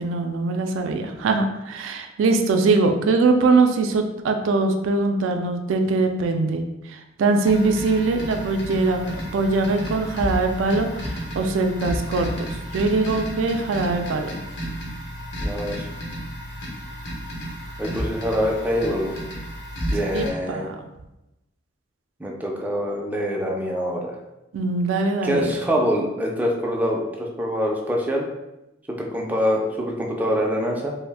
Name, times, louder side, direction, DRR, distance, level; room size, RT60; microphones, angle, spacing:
voice 1, 0.0-12.3 12.7-14.3 20.1-20.8 24.5-25.5, right 3 dB, 90° right, 5 dB, 0.3 m, -22 dB
sound 1, 7.4-20.3, equal, 60° left, 0.9 m, -32 dB
voice 2, 15.4-15.9 17.8-19.1 19.9-20.7 22.2-24.2 25.2-28.3 28.9-30.9, equal, 10° right, -1 dB, 0.3 m, -25 dB
2.5 x 2.0 x 3.3 m, 0.95 s
head